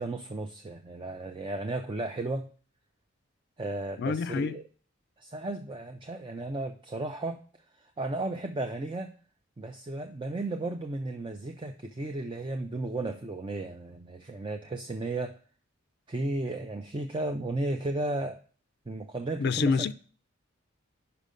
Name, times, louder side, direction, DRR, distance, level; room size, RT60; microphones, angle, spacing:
voice 1, 0.0-2.5 3.6-4.6 5.2-7.4 8.0-9.1 9.6-15.3 16.1-18.4 18.9-19.9, right 2 dB, 25° right, 0.4 m, -34 dB
voice 2, 4.0-4.6 19.4-19.9, left 5 dB, 55° left, 0.4 m, -27 dB
5.7 x 5.1 x 6.6 m
head